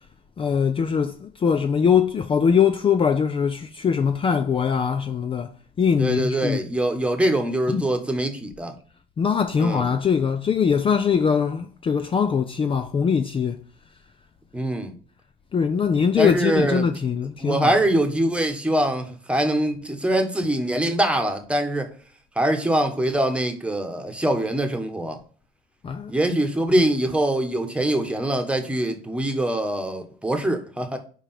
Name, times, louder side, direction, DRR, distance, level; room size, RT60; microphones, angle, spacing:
voice 1, 0.4-5.5 5.8-6.6 7.7-7.8 9.2-13.6 15.5-17.7 25.8-26.1 26.8-26.9, left 6 dB, 30° left, 0.5 m, -22 dB
voice 2, 6.0-8.7 9.6-9.8 14.5-14.9 16.2-16.9 17.4-21.9 22.3-25.2 26.1-31.0, right 1 dB, 5° right, 1.4 m, -23 dB
5.1 x 5.0 x 5.8 m
cardioid pair, 110°, 17 cm